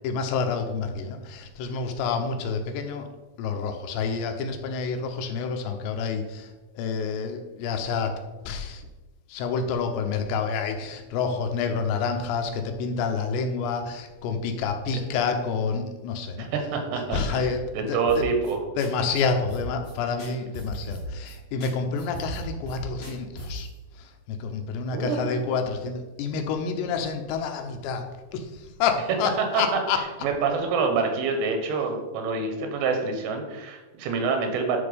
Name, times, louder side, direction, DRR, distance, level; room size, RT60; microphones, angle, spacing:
voice 1, 0.0-3.1 3.4-6.5 6.8-8.2 8.5-8.8 9.3-16.5 17.1-18.2 18.8-23.7 24.0-28.5 28.8-30.0, left 5 dB, 85° left, 5 dB, 3.1 m, -28 dB
voice 2, 16.4-18.6 24.9-25.2 29.5-29.6 29.9-34.8, right 4 dB, 85° right, 4 dB, 3.5 m, -27 dB
sound 1, 18.1-18.5 18.8-18.9 19.1-19.2 19.5-19.9 20.2-21.3 21.6-21.7 22.0-23.7, right 1 dB, 70° left, 0.5 m, -38 dB
11.0 x 4.3 x 5.1 m, 1.2 s
omnidirectional pair, 4.9 m